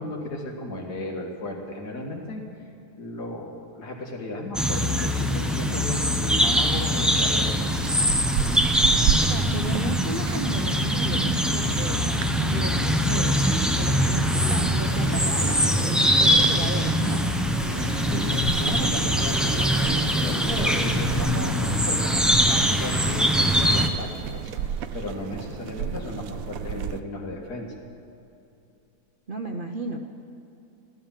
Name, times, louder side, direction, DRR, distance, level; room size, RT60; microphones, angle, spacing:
voice 1, 0.0-2.4 3.0-7.8 18.0-19.8 20.1-27.7, left 1 dB, 75° left, 1 dB, 2.5 m, -35 dB
sound 1, 4.5-23.9, equal, ahead, 0.4 m, -23 dB
sound 2, 7.7-27.0, right 9 dB, 70° right, 1.0 m, -34 dB
voice 2, 9.1-12.0 12.4-17.2 29.3-30.0, right 2 dB, 40° right, 3 dB, 0.8 m, -34 dB
sound 3, 14.8-23.9, equal, 55° left, 2.4 m, -38 dB
15.0 x 12.5 x 7.4 m, 2.8 s
omnidirectional pair, 1.7 m